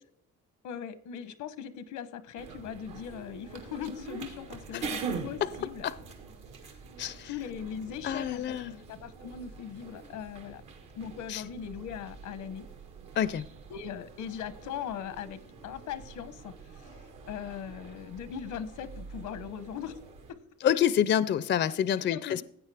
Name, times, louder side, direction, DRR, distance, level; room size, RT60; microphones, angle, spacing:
voice 1, 0.6-5.9 6.6-6.7 7.2-8.6 8.9-10.6 10.9-12.7 13.7-20.0 20.3-20.4 22.0-22.4, left 8 dB, 85° left, 0.9 m, -40 dB
sound 1, 2.4-20.3, right 5 dB, 80° right, 1.8 m, -44 dB
voice 2, 7.0-7.3 8.0-8.8 11.3-11.4 13.2-13.5 20.6-22.4, left 10 dB, 40° left, 0.4 m, -27 dB
15.5 x 8.8 x 3.4 m
cardioid pair, 90°, 30 cm